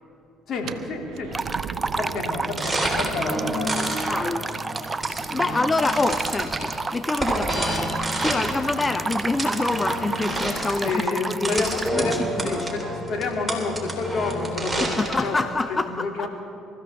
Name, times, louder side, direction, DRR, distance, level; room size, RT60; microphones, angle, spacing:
voice 1, 0.5-1.4 1.8-4.8 10.7-15.4 15.7-16.3, left 4 dB, 55° left, 1 dB, 2.7 m, -30 dB
sound 1, 0.6-6.4, right 8 dB, 65° right, 0.8 m, -40 dB
sound 2, 1.3-11.9, right 3 dB, 25° right, 0.5 m, -31 dB
sound 3, 2.3-15.3, right 1 dB, 5° right, 3.9 m, -29 dB
voice 2, 4.1-4.5 4.7-8.0 8.2-11.6 11.9-12.7 14.8-16.3, left 3 dB, 20° left, 10 dB, 0.6 m, -27 dB
25.5 x 14.5 x 3.5 m, 2.8 s
hypercardioid pair, 55°, 0 cm